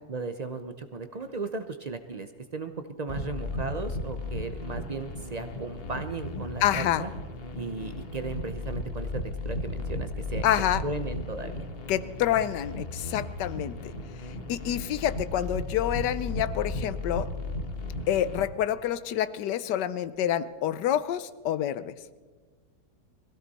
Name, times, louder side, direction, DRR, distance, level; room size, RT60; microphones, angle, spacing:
voice 1, 0.1-2.7 3.0-7.1 7.6-10.5 10.8-11.6, right 3 dB, 60° right, 9 dB, 0.4 m, -36 dB
sound 1, 3.1-18.4, left 2 dB, 40° left, 1.3 m, -35 dB
voice 2, 6.6-7.0 10.4-10.8 11.9-13.8 14.5-17.3 18.1-21.9, left 11 dB, 85° left, 15 dB, 1.3 m, -27 dB
21.5 x 16.0 x 4.1 m, 1.4 s
omnidirectional pair, 1.8 m